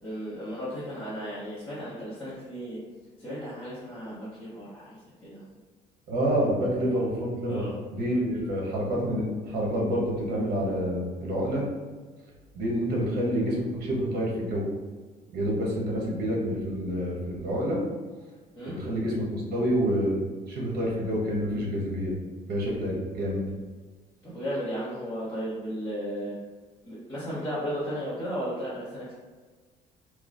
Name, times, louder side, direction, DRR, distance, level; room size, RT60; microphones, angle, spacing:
voice 1, 0.0-2.8 3.2-5.5 7.5-7.7 18.6-18.8 24.2-26.3 26.8-29.1, equal, 15° left, -12 dB, 1.0 m, -35 dB
voice 2, 6.1-7.5 7.9-11.6 12.5-14.7 15.3-17.8 18.6-20.2 20.5-22.1 22.5-23.4, equal, 65° right, -3 dB, 0.9 m, -28 dB
3.0 x 2.3 x 2.5 m, 1.4 s
cardioid pair, 110°, 17 cm